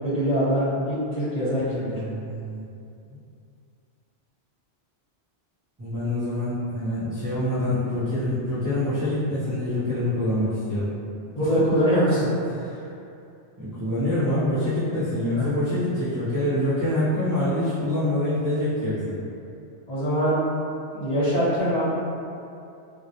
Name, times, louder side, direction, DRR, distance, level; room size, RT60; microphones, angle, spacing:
voice 1, 0.0-2.0 11.4-12.3 12.8-12.9 15.3-15.5 19.9-20.4 20.9-21.8, equal, 35° left, -11 dB, 1.0 m, -23 dB
voice 2, 1.9-2.7 3.0-3.2 5.8-10.9 11.7-11.8 12.6-12.7 13.6-19.2, left 1 dB, 30° right, -14 dB, 0.4 m, -26 dB
2.2 x 2.1 x 2.7 m, 2.6 s
omnidirectional pair, 1.1 m